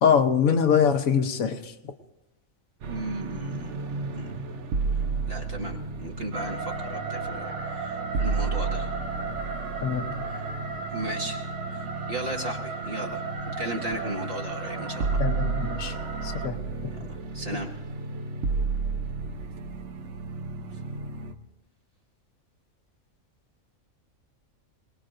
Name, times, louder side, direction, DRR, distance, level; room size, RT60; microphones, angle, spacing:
voice 1, 0.0-1.7 9.8-10.1 15.2-15.9 16.2-16.6, left 7 dB, 80° left, 6 dB, 1.3 m, -23 dB
sound 1, 2.8-21.3, right 4 dB, 60° right, 1.1 m, -32 dB
voice 2, 2.9-3.8 4.1-4.3 5.3-9.0 10.3-10.5 10.7-11.5 11.7-13.2 13.6-15.2 17.0-17.7, right 1 dB, 45° right, 1 dB, 2.0 m, -36 dB
sound 2, 6.3-16.5, right 4 dB, 80° right, 1.5 m, -36 dB
26.5 x 19.5 x 2.6 m, 0.97 s
omnidirectional pair, 1.4 m